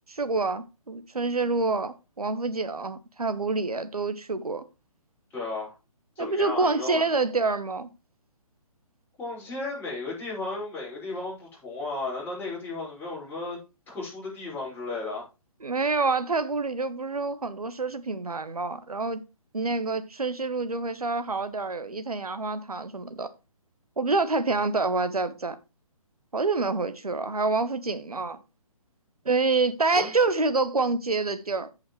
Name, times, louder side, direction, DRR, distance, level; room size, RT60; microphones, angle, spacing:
voice 1, 0.1-4.6 6.2-7.9 15.6-19.2 19.5-23.3 24.0-25.6 26.3-28.4 29.2-31.7, right 3 dB, 90° right, 1.1 m, -27 dB
voice 2, 5.3-5.8 6.2-7.1 9.2-13.6 13.9-15.2 29.9-30.1, left 3 dB, 10° left, 5.6 m, -34 dB
15.0 x 5.6 x 3.2 m
figure-of-eight pair, 140°, 19 cm